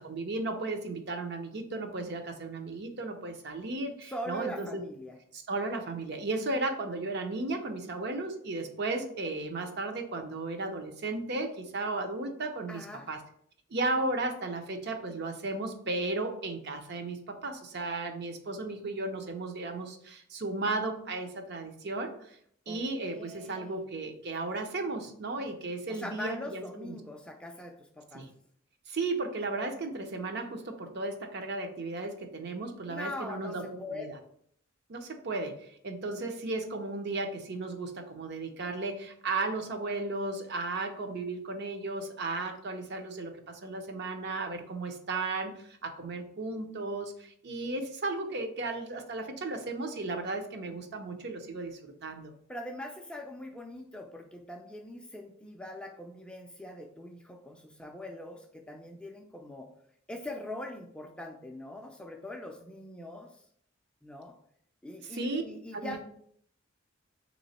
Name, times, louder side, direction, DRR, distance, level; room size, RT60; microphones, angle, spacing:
voice 1, 0.0-4.8 5.3-13.2 13.7-22.4 22.7-27.0 28.1-28.3 28.9-34.1 34.9-52.3 65.1-65.4 65.7-66.0, right 2 dB, 55° right, 5 dB, 0.6 m, -35 dB
voice 2, 4.0-5.2 12.7-13.1 22.7-23.9 25.9-28.3 32.9-34.1 52.5-59.7 60.1-63.4 64.0-64.4 64.8-66.0, left 1 dB, 5° left, 2 dB, 0.3 m, -42 dB
3.5 x 3.0 x 4.1 m, 0.66 s
head